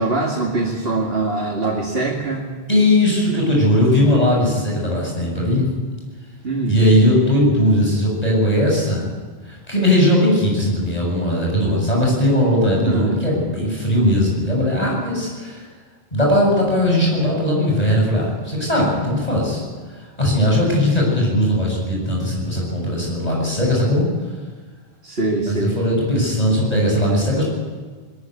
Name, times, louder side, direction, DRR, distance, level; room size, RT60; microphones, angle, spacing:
voice 1, 0.0-2.5 6.4-6.8 12.9-13.1 25.0-25.8, right 2 dB, 65° right, -3 dB, 2.6 m, -22 dB
voice 2, 2.7-5.7 6.6-9.1 9.4-15.6 16.1-19.6 20.2-24.1 25.5-27.4, left 1 dB, 40° left, -2 dB, 7.5 m, -18 dB
20.5 x 14.5 x 9.5 m, 1.5 s
omnidirectional pair, 1.1 m